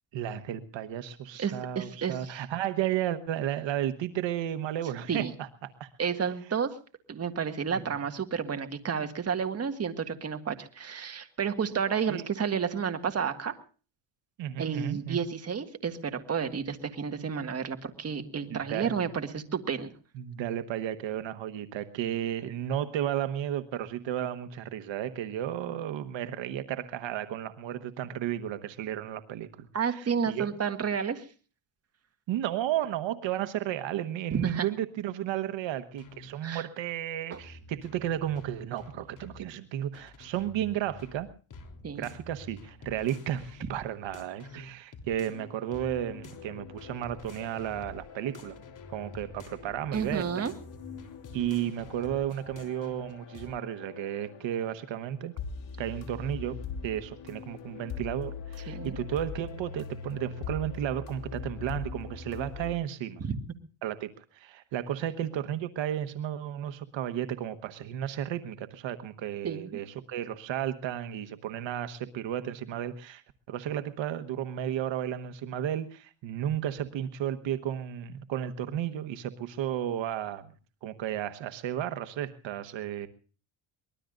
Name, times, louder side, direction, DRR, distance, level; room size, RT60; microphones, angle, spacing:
voice 1, 0.1-5.9 7.7-7.8 12.1-12.2 14.4-15.2 18.5-19.0 20.1-30.5 32.3-41.3 42.0-48.6 48.9-50.4 51.3-55.3 55.8-63.2 63.8-80.5 80.8-83.1, right 11 dB, 75° right, 10 dB, 1.3 m, -33 dB
voice 2, 1.4-2.4 5.1-5.3 6.0-6.8 7.1-13.6 14.6-19.9 29.7-31.3 34.3-34.7 36.4-36.7 37.3-37.4 41.8-42.1 49.9-50.5 58.7-59.0 63.2-63.4 69.4-69.6, right 6 dB, 35° right, 7 dB, 1.8 m, -31 dB
sound 1, 36.0-36.3 37.3-39.4 39.9-45.5 45.7-48.1 48.3-53.5, left 3 dB, 45° left, 3.4 m, -49 dB
sound 2, 45.2-62.7, left 6 dB, 75° left, 3.2 m, -43 dB
24.0 x 20.0 x 2.5 m, 0.38 s
cardioid pair, 135°, 46 cm